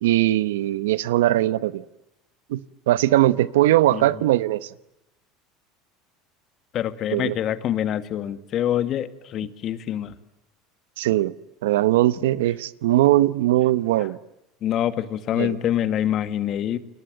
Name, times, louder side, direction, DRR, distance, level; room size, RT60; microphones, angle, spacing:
voice 1, 0.0-1.8 2.5-4.7 7.1-7.4 11.0-11.3 11.6-14.2 15.4-15.6, right 15 dB, 90° right, 1.0 m, -20 dB
voice 2, 6.7-10.1 14.0-14.1 14.6-16.8, left 11 dB, 50° left, 2.0 m, -25 dB
30.0 x 22.5 x 9.0 m
supercardioid pair, 110°, 0 cm